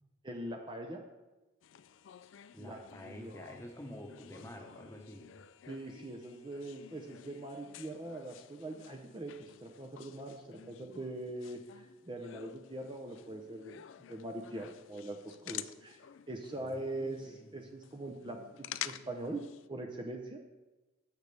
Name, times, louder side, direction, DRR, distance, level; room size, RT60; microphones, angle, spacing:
voice 1, 0.2-1.0 2.6-3.3 5.7-13.8 14.1-16.0 16.3-19.4 19.7-20.4, right 2 dB, 25° right, 2 dB, 0.6 m, -42 dB
sound 1, 1.6-19.7, left 11 dB, 65° left, 0.3 m, -50 dB
voice 2, 2.5-5.4 16.6-17.5, left 1 dB, 15° left, 2 dB, 1.0 m, -48 dB
16.0 x 6.5 x 3.4 m, 1.1 s
head